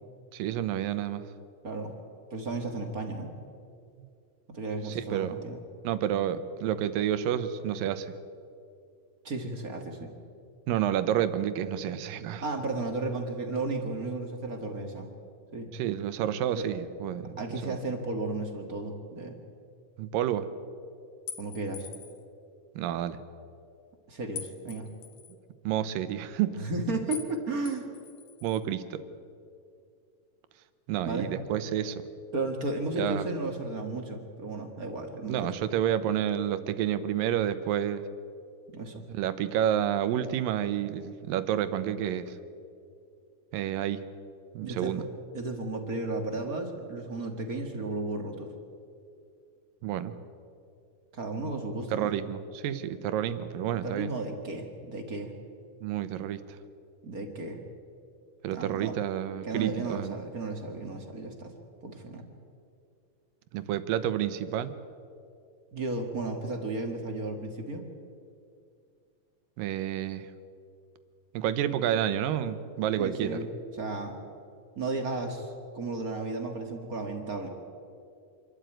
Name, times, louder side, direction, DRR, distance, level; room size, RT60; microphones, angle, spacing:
voice 1, 0.3-1.2 4.8-5.4 5.8-8.1 10.7-12.4 15.7-17.3 17.6-17.8 20.0-20.5 22.8-23.2 25.6-26.6 28.4-29.0 30.9-32.0 33.0-33.3 35.3-38.1 39.1-42.4 43.5-44.0 44.5-45.1 49.8-50.1 51.9-54.1 55.8-56.6 58.4-60.2 63.5-64.7 69.6-70.3 71.3-73.4, right 10 dB, 85° right, 12 dB, 2.7 m, -29 dB
voice 2, 1.6-2.0 2.3-3.3 4.5-5.6 9.2-10.1 12.4-15.1 15.5-15.7 16.5-16.7 17.4-19.4 21.4-21.9 24.1-24.9 26.6-27.9 31.0-31.3 32.3-35.5 38.7-39.0 44.6-45.0 45.3-48.5 51.1-52.1 53.8-55.3 57.0-57.6 58.5-59.0 59.4-61.5 61.8-62.3 65.7-67.9 73.0-73.5 73.8-74.1 74.7-77.5, right 2 dB, 35° right, 4 dB, 1.5 m, -34 dB
sound 1, 21.3-22.2 24.4-25.3 27.1-27.3 27.7-28.6, left 8 dB, 55° left, 2.2 m, -43 dB
26.5 x 13.0 x 9.2 m, 2.4 s
omnidirectional pair, 3.9 m